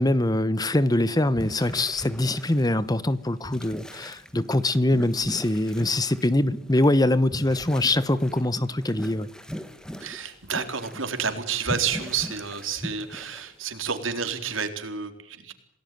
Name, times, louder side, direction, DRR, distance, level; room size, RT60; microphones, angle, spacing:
voice 1, 0.0-9.3, left 1 dB, 20° left, 1.0 m, -23 dB
sound 1, 0.8-0.9 1.2-13.6, equal, 5° left, 2.0 m, -39 dB
voice 2, 10.0-15.5, right 6 dB, 85° right, 4.1 m, -30 dB
28.0 x 19.0 x 9.4 m
head